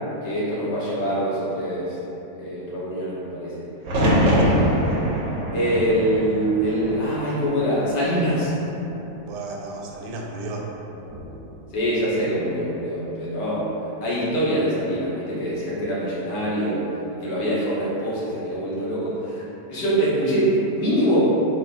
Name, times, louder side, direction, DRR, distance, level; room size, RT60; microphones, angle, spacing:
voice 1, 0.2-2.0 2.4-3.7 5.5-8.5 11.7-13.7 14.0-16.8 17.1-19.4 19.7-21.3, equal, 90° left, -8 dB, 1.7 m, -24 dB
sound 1, 3.8-7.9 8.2-9.0 10.9-11.4, equal, 60° right, 0.9 m, -23 dB
voice 2, 4.0-4.5 9.2-10.8, right 2 dB, 80° right, -1 dB, 1.2 m, -33 dB
4.2 x 3.5 x 2.5 m, 3.0 s
omnidirectional pair, 1.8 m